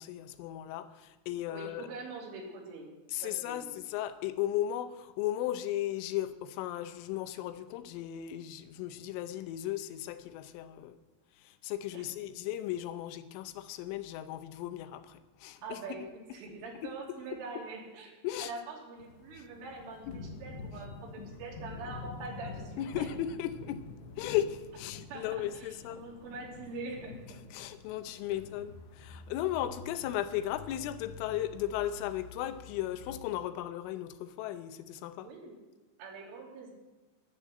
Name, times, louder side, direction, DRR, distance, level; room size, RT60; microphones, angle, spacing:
voice 1, 0.0-1.9 3.1-11.0 11.4-15.8 16.8-16.9 18.2-18.5 20.1-20.2 22.8-23.8 24.2-26.0 27.5-35.3, left 12 dB, 90° left, 11 dB, 3.3 m, -36 dB
voice 2, 1.5-2.9 3.2-3.8 11.9-12.0 15.6-23.1 25.1-27.4 35.2-35.6 36.0-36.7, right 3 dB, 85° right, -2 dB, 5.3 m, -44 dB
sound 1, 19.0-33.2, left 4 dB, 70° left, 2.9 m, -47 dB
11.5 x 10.5 x 7.7 m, 1.1 s
omnidirectional pair, 5.6 m